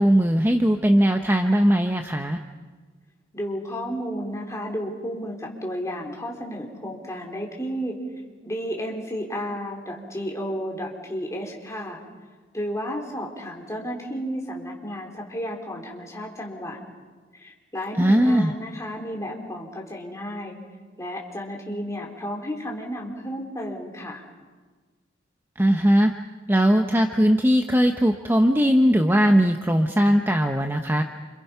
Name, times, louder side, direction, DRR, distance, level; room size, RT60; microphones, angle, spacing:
voice 1, 0.0-2.4 18.0-18.5 25.6-26.1 26.5-31.0, equal, 10° right, 4 dB, 0.9 m, -19 dB
voice 2, 3.3-8.0 8.4-12.0 12.5-16.8 17.3-20.6 21.0-24.2, equal, 15° left, 0 dB, 4.0 m, -32 dB
29.0 x 27.5 x 5.7 m, 1.4 s
head